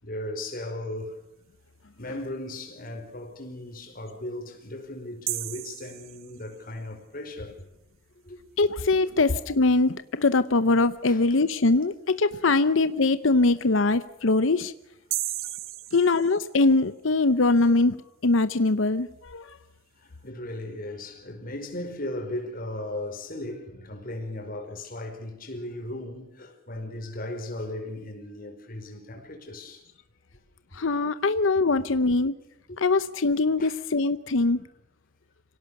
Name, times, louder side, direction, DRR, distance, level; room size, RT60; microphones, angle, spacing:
voice 1, 0.0-1.2 2.0-7.7 8.2-8.4 9.2-9.4 11.1-11.2 20.0-29.8 30.7-30.8 32.7-32.8 33.6-33.8, left 1 dB, 45° left, 5.1 m, -37 dB
sound 1, 5.3-6.8 15.1-16.9, right 15 dB, 80° right, 0.9 m, -34 dB
voice 2, 8.6-14.7 15.9-19.5 30.7-32.3 32.8-34.6, left 3 dB, 70° left, 0.8 m, -22 dB
26.0 x 17.5 x 6.7 m
head